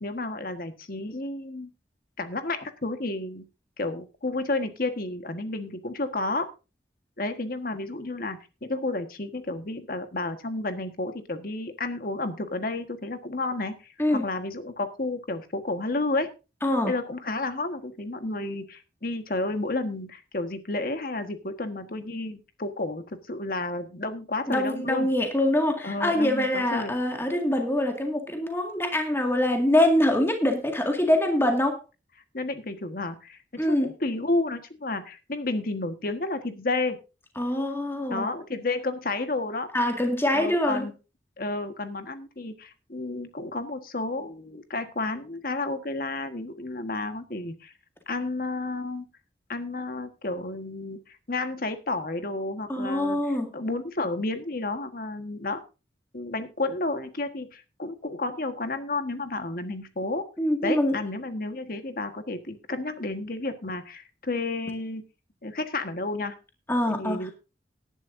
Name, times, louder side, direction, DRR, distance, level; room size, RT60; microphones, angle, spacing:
voice 1, 0.0-1.7 2.2-3.4 3.8-6.5 7.2-16.3 16.8-25.1 25.8-26.9 32.3-37.0 38.1-39.7 40.3-40.9 41.4-47.7 48.1-49.0 49.5-55.6 56.1-60.2 60.6-65.0 65.4-66.3 66.9-67.3, left 2 dB, 55° left, 8 dB, 1.5 m, -31 dB
voice 2, 16.6-16.9 24.5-31.8 33.6-33.9 37.4-38.3 39.7-40.9 52.7-53.5 60.4-60.9 66.7-67.2, left 1 dB, 15° left, 3 dB, 2.0 m, -24 dB
18.5 x 11.0 x 2.6 m, 0.30 s
head